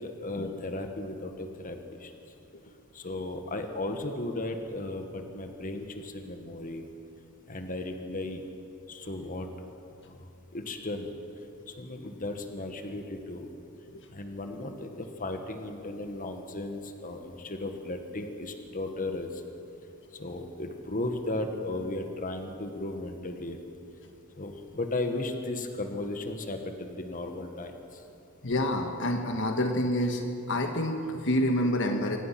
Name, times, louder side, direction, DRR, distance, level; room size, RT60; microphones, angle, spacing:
voice 1, 0.0-2.1 2.9-6.9 7.5-8.4 8.9-9.5 10.1-10.2 10.5-11.1 11.7-13.5 14.1-19.4 20.2-23.6 24.4-28.0, left 2 dB, 40° left, 5 dB, 1.6 m, -35 dB
voice 2, 28.4-32.2, left 1 dB, 60° left, 4 dB, 1.4 m, -28 dB
25.0 x 18.5 x 6.0 m, 2.7 s
head